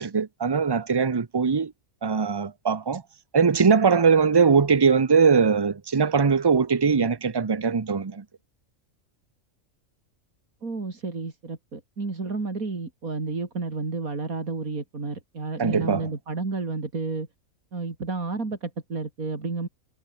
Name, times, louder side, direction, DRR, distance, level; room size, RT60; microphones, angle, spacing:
voice 1, 0.0-1.7 2.0-3.0 3.3-8.2 15.6-16.1, right 5 dB, 25° right, 0.6 m, -21 dB
voice 2, 10.6-17.3 17.7-19.7, right 3 dB, 80° right, 3.8 m, -31 dB
omnidirectional pair, 1.4 m